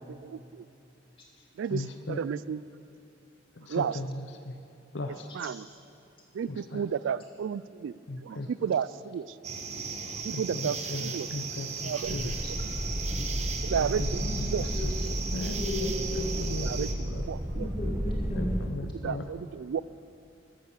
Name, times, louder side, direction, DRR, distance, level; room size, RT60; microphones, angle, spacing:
voice 1, 0.1-0.6 1.6-2.6 3.7-4.0 5.3-5.7 6.3-7.9 8.2-9.3 10.2-11.3 11.8-12.2 12.5-12.7 13.6-14.6 16.6-17.7 19.0-19.8, right 7 dB, 75° right, 19 dB, 0.3 m, -33 dB
voice 2, 1.7-2.2 3.6-4.6 4.9-5.3 6.5-6.8 8.1-8.5 10.3-12.5 13.8-14.9 15.3-15.6 16.2-17.2 18.4-19.2, left 2 dB, 65° left, 5 dB, 0.7 m, -37 dB
sound 1, 9.4-16.9, right 5 dB, 35° right, 1.0 m, -36 dB
sound 2, 12.0-18.7, equal, 15° right, 1.1 m, -32 dB
voice 3, 15.4-16.5 17.5-18.6, left 1 dB, 25° left, -3 dB, 2.8 m, -35 dB
14.5 x 10.5 x 6.7 m, 2.8 s
head